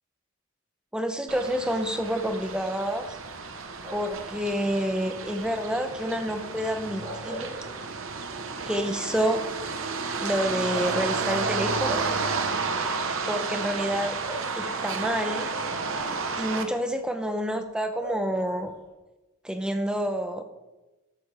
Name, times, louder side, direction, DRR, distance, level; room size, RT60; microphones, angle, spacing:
voice 1, 0.9-3.2 3.9-7.5 8.7-9.4 10.2-12.1 13.3-14.2 14.6-15.5 16.4-18.7 19.4-20.4, equal, 5° right, 7 dB, 0.7 m, -28 dB
sound 1, 1.3-16.7, right 4 dB, 65° right, 1.0 m, -31 dB
sound 2, 3.8-4.3 6.8-8.2 8.6-8.7 10.2-10.3 10.7-11.8 12.8-13.0 14.2-14.9 18.0-18.9, equal, 30° right, 3.8 m, -40 dB
12.5 x 8.4 x 3.4 m, 1.1 s
head